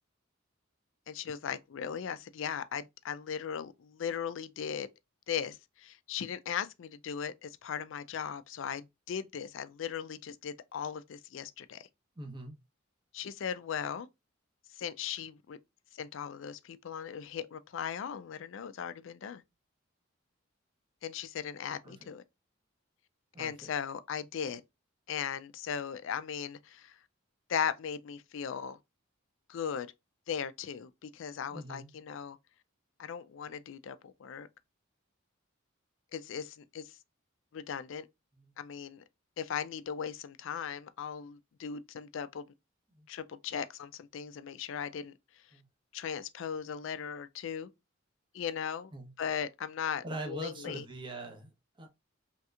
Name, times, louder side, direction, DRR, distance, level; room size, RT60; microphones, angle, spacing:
voice 1, 1.1-4.9 5.3-11.9 13.1-14.1 14.8-15.6 15.9-19.4 21.0-22.2 23.4-24.6 25.1-27.0 27.5-28.8 29.5-29.9 30.3-32.4 33.0-34.5 36.1-36.9 37.5-38.1 38.6-39.0 39.4-42.5 43.1-45.1 45.9-47.7 48.3-48.9 49.2-50.8, left 7 dB, 65° left, 0.4 m, -38 dB
voice 2, 12.2-12.6 21.8-22.1 23.3-23.7 31.5-31.9 38.3-38.5 42.9-43.1 45.5-45.6 48.9-49.1 50.0-51.9, right 2 dB, 25° right, 0.8 m, -43 dB
3.2 x 2.8 x 2.3 m
head